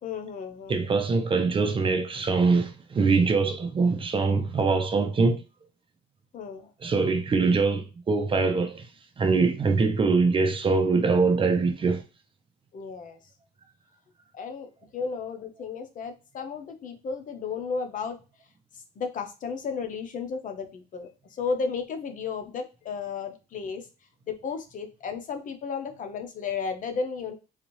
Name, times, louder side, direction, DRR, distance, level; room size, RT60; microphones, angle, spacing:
voice 1, 0.0-0.8 6.3-6.7 12.7-13.2 14.3-18.2 19.0-23.8 24.3-27.4, left 5 dB, 50° left, 0.8 m, -33 dB
voice 2, 0.7-5.4 6.8-8.9 9.2-12.0, right 4 dB, 30° right, 0.8 m, -23 dB
4.1 x 2.5 x 3.1 m
cardioid pair, 110°, 17 cm